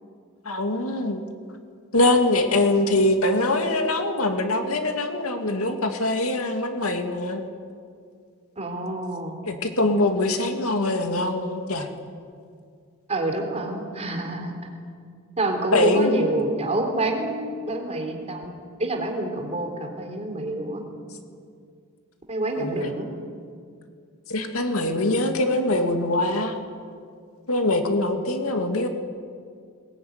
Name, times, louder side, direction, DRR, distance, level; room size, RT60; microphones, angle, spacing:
voice 1, 0.5-1.2 1.9-7.4 9.5-11.9 15.7-16.3 22.6-22.9 24.3-26.6 27.5-28.9, left 2 dB, 85° left, 5 dB, 2.4 m, -23 dB
voice 2, 8.6-9.4 13.1-14.5 15.4-18.5 18.8-20.8 22.3-23.0, right 2 dB, 30° right, 3 dB, 3.7 m, -27 dB
21.0 x 20.0 x 9.6 m, 2.2 s
head